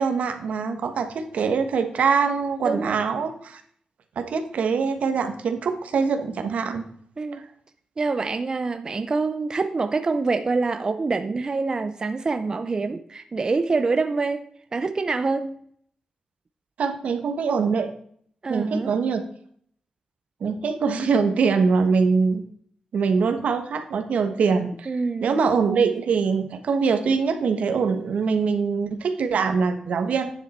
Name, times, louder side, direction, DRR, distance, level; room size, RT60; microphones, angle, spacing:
voice 1, 0.0-3.6 4.1-6.8 7.3-7.4 16.8-17.9 18.5-19.2 20.4-22.4 22.9-24.9 25.2-30.3, right 5 dB, 75° right, 7 dB, 1.3 m, -23 dB
voice 2, 2.6-3.0 7.2-7.5 8.0-15.6 18.4-19.0 24.9-25.4, right 3 dB, 35° right, 9 dB, 0.5 m, -26 dB
9.5 x 7.4 x 4.3 m, 0.63 s
wide cardioid pair, 125°, 2 cm